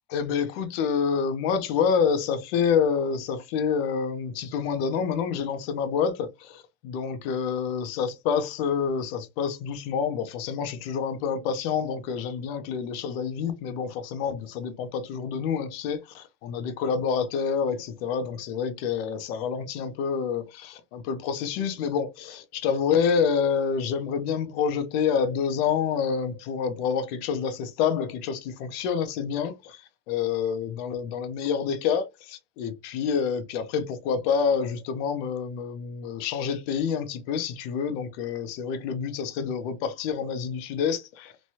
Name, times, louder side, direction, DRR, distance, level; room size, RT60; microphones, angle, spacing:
voice 1, 0.1-41.3, left 6 dB, 45° left, 0.6 m, -28 dB
3.0 x 2.2 x 2.7 m
supercardioid pair, 155°, 41 cm